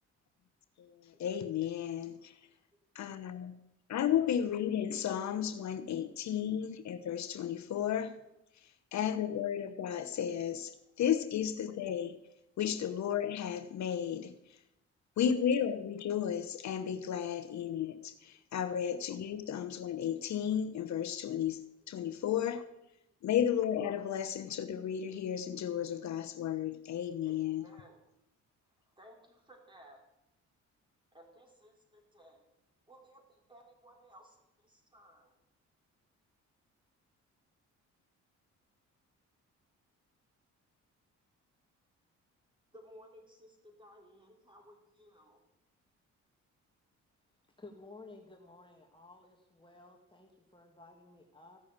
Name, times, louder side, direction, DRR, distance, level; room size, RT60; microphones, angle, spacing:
voice 1, 0.8-2.3 2.9-3.6 3.9-8.2 8.9-12.2 12.6-14.4 15.2-21.6 21.9-22.7 23.2-27.6, left 9 dB, 65° left, 1.0 m, -33 dB
voice 2, 2.1-2.5 3.2-3.4 7.6-7.7 22.1-22.2 27.2-28.1 29.0-30.0 31.1-32.4 32.9-35.4 42.7-45.4, equal, 15° right, 4.1 m, -58 dB
voice 3, 47.6-51.6, left 3 dB, 15° left, 1.6 m, -54 dB
15.5 x 6.3 x 8.7 m
cardioid pair, 90°, 30 cm